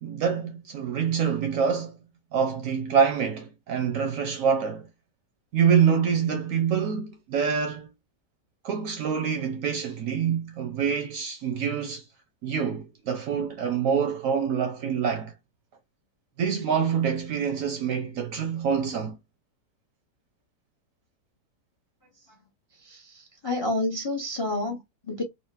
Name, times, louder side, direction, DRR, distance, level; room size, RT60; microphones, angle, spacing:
voice 1, 0.0-2.0 2.3-4.9 5.5-7.9 8.6-12.0 12.4-15.3 16.4-19.2, right 7 dB, 70° right, 0.8 m, -26 dB
voice 2, 22.8-25.2, left 2 dB, 35° left, 0.4 m, -30 dB
3.9 x 2.0 x 2.2 m
omnidirectional pair, 1.8 m